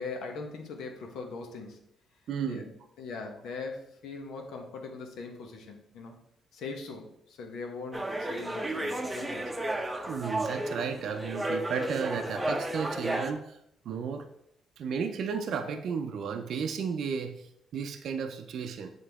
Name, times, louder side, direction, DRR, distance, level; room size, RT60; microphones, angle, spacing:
voice 1, 0.0-1.8 2.4-2.6 3.0-6.2 6.5-9.6, left 4 dB, 80° left, 3 dB, 1.0 m, -40 dB
voice 2, 2.3-2.7 10.1-13.6 13.9-14.3 14.8-18.9, right 6 dB, 70° right, 6 dB, 0.5 m, -33 dB
sound 1, 7.9-13.3, right 1 dB, 10° right, 0.7 m, -33 dB
7.4 x 3.8 x 3.5 m, 0.76 s
cardioid pair, 90°, 0 cm